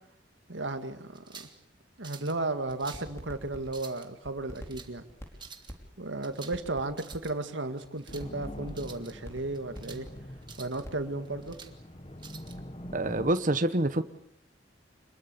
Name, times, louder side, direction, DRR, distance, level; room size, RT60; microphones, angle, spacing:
voice 1, 0.5-1.5 2.0-5.0 6.0-10.1 10.6-11.6, right 2 dB, 85° right, 8 dB, 2.1 m, -34 dB
sound 1, 1.1-1.6 2.0-2.4 2.7-3.1 3.6-4.1 4.5-4.9 5.3-5.7 6.2-6.6 6.9-7.3 7.8-8.3 8.7-9.1 9.5-10.0 10.4-10.8 11.2-11.7 12.2-12.6, right 6 dB, 25° right, 1.8 m, -48 dB
sound 2, 2.7-12.2 12.5-12.9, equal, 15° left, 4.6 m, -45 dB
sound 3, 8.1-13.4, left 1 dB, 30° left, 1.2 m, -44 dB
voice 2, 12.9-14.0, right 1 dB, 45° right, 10 dB, 1.1 m, -26 dB
26.5 x 21.5 x 7.0 m, 0.65 s
head